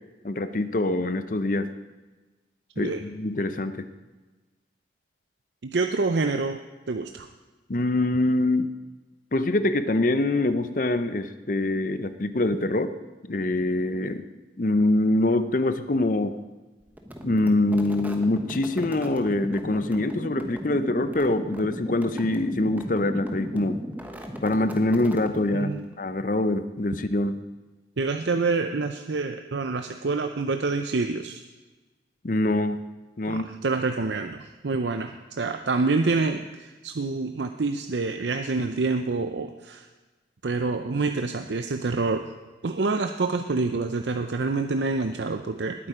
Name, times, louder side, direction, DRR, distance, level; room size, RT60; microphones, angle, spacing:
voice 1, 0.2-1.7 2.8-3.9 7.7-8.7 9.3-12.9 13.3-14.3 14.6-16.4 17.2-23.8 24.4-27.4 32.2-32.8 33.2-33.5, left 2 dB, 45° left, 11 dB, 0.7 m, -24 dB
voice 2, 5.6-6.6 6.9-7.3 25.5-25.9 28.0-31.4 33.3-39.9 40.4-42.3 42.6-45.9, right 3 dB, 80° right, 7 dB, 0.6 m, -27 dB
sound 1, 17.0-25.9, equal, 10° right, 1.1 m, -36 dB
19.5 x 8.8 x 5.0 m, 1.2 s
head